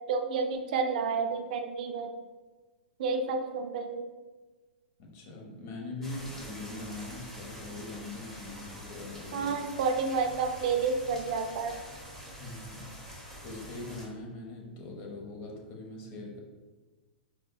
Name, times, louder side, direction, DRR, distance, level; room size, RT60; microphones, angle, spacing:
voice 1, 0.1-2.1 3.0-4.0 9.3-11.8, right 5 dB, 60° right, 5 dB, 0.4 m, -30 dB
voice 2, 5.0-9.5 12.4-12.8 13.4-16.4, left 2 dB, 45° left, 0 dB, 0.8 m, -42 dB
sound 1, 6.0-14.1, equal, 5° left, 0.7 m, -46 dB
4.8 x 2.1 x 2.2 m, 1.3 s
hypercardioid pair, 120°, 5 cm